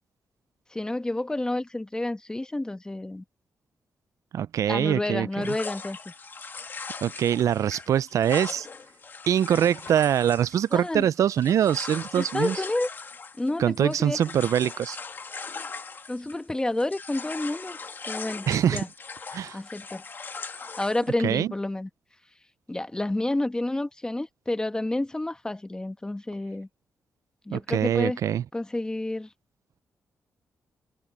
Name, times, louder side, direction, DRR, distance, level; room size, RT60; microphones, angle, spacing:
voice 1, 0.7-3.2 4.7-6.1 10.7-11.1 12.2-12.9 13.4-14.2 16.1-17.8 18.1-18.9 19.5-20.0 20.8-21.9 22.7-26.7 27.5-28.2 28.5-29.3, left 2 dB, 15° left, 1.1 m, -29 dB
voice 2, 4.3-5.3 7.0-8.7 9.3-12.6 13.6-15.0 18.5-18.8 19.3-19.6 21.2-21.5 27.5-28.4, right 9 dB, 70° right, 0.3 m, -23 dB
sound 1, 5.4-16.5 16.8-21.1, left 4 dB, 40° left, 1.9 m, -40 dB
cardioid pair, 110°, 6 cm